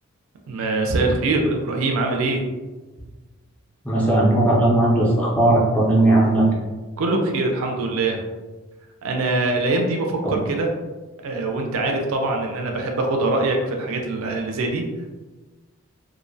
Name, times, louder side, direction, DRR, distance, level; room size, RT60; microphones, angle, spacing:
voice 1, 0.5-2.5 6.0-6.1 7.0-8.2 9.0-10.7 11.2-14.8, right 2 dB, 70° right, 2 dB, 0.4 m, -23 dB
voice 2, 3.8-6.4 10.2-10.3, right 1 dB, 5° left, -5 dB, 0.3 m, -17 dB
2.5 x 2.0 x 2.5 m, 1.2 s
head